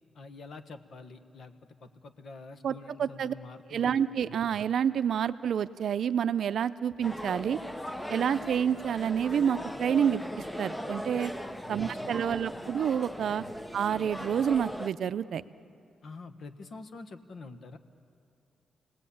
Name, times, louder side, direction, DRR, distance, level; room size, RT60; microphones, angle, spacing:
voice 1, 0.1-4.4 11.6-12.7 13.4-13.6 16.0-17.8, left 3 dB, 55° left, 8 dB, 1.3 m, -47 dB
voice 2, 3.0-3.3 3.7-7.6 8.1-10.2 10.6-11.3 11.7-13.4 13.7-15.4, right 8 dB, 65° right, 13 dB, 0.5 m, -28 dB
sound 1, 7.0-14.9, equal, 5° left, 0.7 m, -38 dB
29.5 x 19.0 x 8.6 m, 2.7 s
cardioid pair, 125°, 0 cm